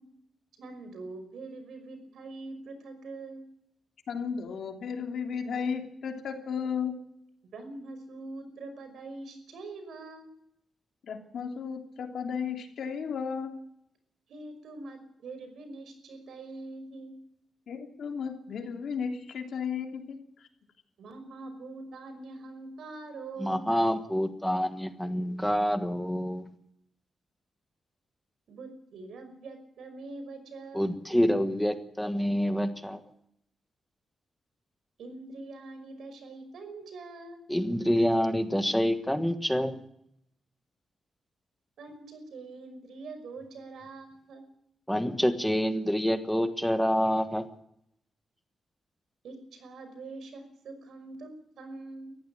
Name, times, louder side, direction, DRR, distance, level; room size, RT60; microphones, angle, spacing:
voice 1, 0.6-3.4 7.5-10.3 14.3-17.2 21.0-23.7 28.5-31.0 35.0-37.4 41.8-44.5 49.2-52.2, right 3 dB, 85° right, 8 dB, 5.6 m, -44 dB
voice 2, 4.1-6.9 11.1-13.5 17.7-20.2, left 6 dB, 70° left, 4 dB, 3.1 m, -34 dB
voice 3, 23.4-26.4 30.7-33.0 37.5-39.8 44.9-47.5, equal, ahead, 9 dB, 1.4 m, -27 dB
20.5 x 15.0 x 8.6 m, 0.74 s
wide cardioid pair, 160°, 0 cm